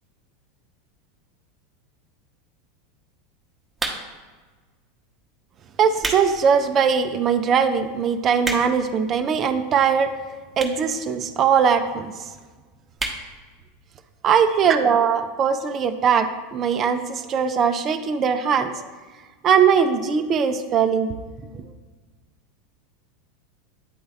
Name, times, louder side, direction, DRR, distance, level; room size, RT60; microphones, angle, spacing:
sound 1, 3.7-4.3 5.0-5.2 5.7-6.3 6.7-6.8 7.4-7.5 7.7-7.8 8.1-8.9 9.7-9.8 10.5-10.9 11.2-11.3 11.5-11.6 11.8-11.9 12.2-12.5 12.9-13.2 13.6-13.7 13.9-14.0, right 2 dB, 15° right, 1.0 m, -29 dB
voice 1, 5.8-10.1 10.6-12.2 14.2-18.8 19.4-21.1 21.5-21.6, right 7 dB, 35° right, 8 dB, 0.5 m, -20 dB
9.4 x 3.3 x 3.3 m, 1.4 s
figure-of-eight pair, 85°, 0 cm